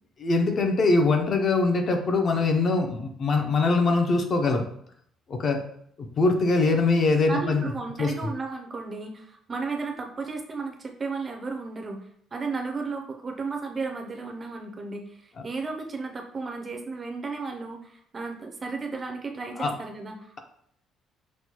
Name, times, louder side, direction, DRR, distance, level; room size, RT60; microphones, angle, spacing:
voice 1, 0.2-4.6 5.3-5.6 6.0-7.7 8.0-8.1 19.6-19.7, left 3 dB, 35° left, 4 dB, 0.5 m, -23 dB
voice 2, 7.3-12.0 12.3-20.3, right 4 dB, 25° right, 3 dB, 0.4 m, -34 dB
6.0 x 2.1 x 2.8 m, 0.65 s
cardioid pair, 170°, 0 cm